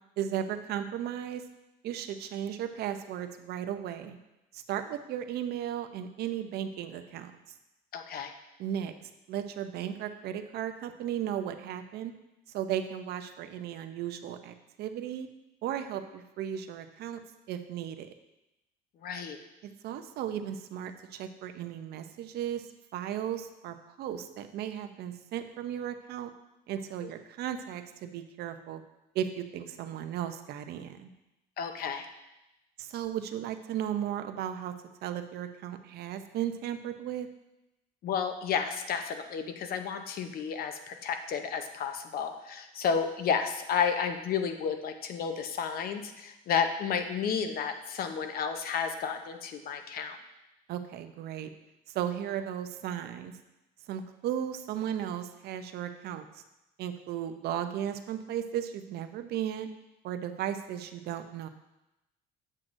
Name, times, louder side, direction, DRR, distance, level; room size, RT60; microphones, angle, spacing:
voice 1, 0.2-1.4 1.8-4.2 4.5-7.3 8.6-8.9 9.3-12.1 12.5-15.3 15.6-17.2 17.5-18.1 19.6-22.7 22.9-26.3 26.7-28.8 29.1-31.1 32.8-34.7 35.0-37.3 50.7-51.5 51.9-53.3 53.9-56.4 56.8-59.7 60.0-61.5, right 10 dB, 75° right, 8 dB, 0.6 m, -35 dB
voice 2, 7.9-8.3 19.0-19.4 27.0-27.1 31.6-32.1 38.0-50.2, left 6 dB, 60° left, 7 dB, 0.7 m, -32 dB
7.5 x 7.5 x 2.6 m, 0.95 s
cardioid pair, 110°, 17 cm